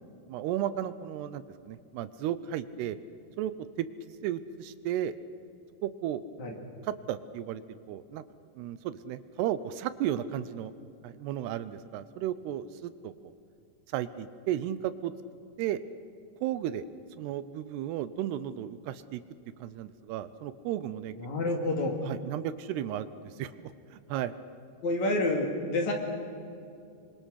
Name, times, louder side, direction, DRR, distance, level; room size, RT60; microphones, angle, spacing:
voice 1, 0.3-3.0 3.4-3.5 3.8-3.9 4.2-5.1 5.8-6.2 6.8-8.2 8.6-10.7 11.0-13.3 13.9-15.1 15.6-15.8 16.4-16.8 17.2-19.2 19.6-21.1 22.0-24.3, right 11 dB, 80° right, 14 dB, 2.7 m, -34 dB
voice 2, 21.1-21.9 24.8-25.9, left 2 dB, 50° left, 2 dB, 3.3 m, -28 dB
27.0 x 24.0 x 6.4 m, 2.5 s
omnidirectional pair, 4.9 m